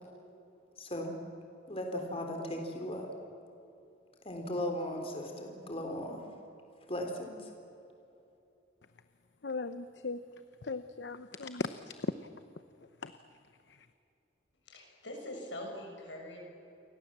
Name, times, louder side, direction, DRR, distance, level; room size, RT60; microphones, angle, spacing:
voice 1, 0.8-1.1 1.7-3.1 4.2-6.2 6.9-7.5, left 1 dB, 35° left, 3 dB, 3.6 m, -37 dB
voice 2, 9.4-10.2 10.6-12.1 13.0-13.1 13.7-13.9, left 3 dB, 70° left, 11 dB, 0.9 m, -37 dB
voice 3, 14.6-16.4, left 1 dB, 85° left, 1 dB, 6.9 m, -43 dB
29.0 x 24.5 x 7.5 m, 2.7 s
head